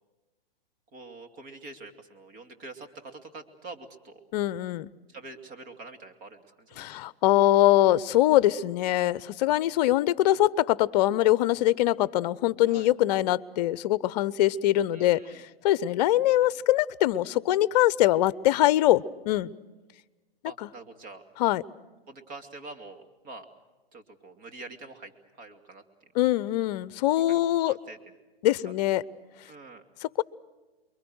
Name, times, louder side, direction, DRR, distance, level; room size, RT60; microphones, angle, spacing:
voice 1, 0.9-4.2 5.1-7.2 12.7-12.9 14.9-15.5 20.4-21.2 22.1-23.5 23.9-26.1 27.2-28.1 28.6-28.7 29.5-29.8, right 3 dB, 35° right, 6 dB, 2.8 m, -46 dB
voice 2, 4.3-4.9 6.8-15.2 15.6-19.5 20.6-20.7 21.4-21.6 26.1-27.7 28.4-29.0 30.0-30.2, left 14 dB, 45° left, 20 dB, 0.8 m, -23 dB
29.0 x 23.0 x 6.3 m, 1.2 s
hypercardioid pair, 120°, 30 cm